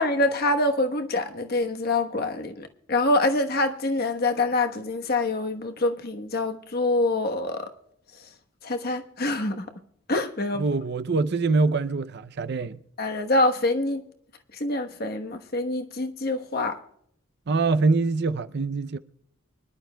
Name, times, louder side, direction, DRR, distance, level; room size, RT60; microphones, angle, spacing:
voice 1, 0.0-7.7 8.6-9.6 10.1-10.6 13.0-14.0 14.6-16.8, left 2 dB, 45° left, 1.1 m, -25 dB
voice 2, 10.5-12.8 17.5-19.0, right 3 dB, 50° right, 0.5 m, -24 dB
24.5 x 11.5 x 2.2 m
head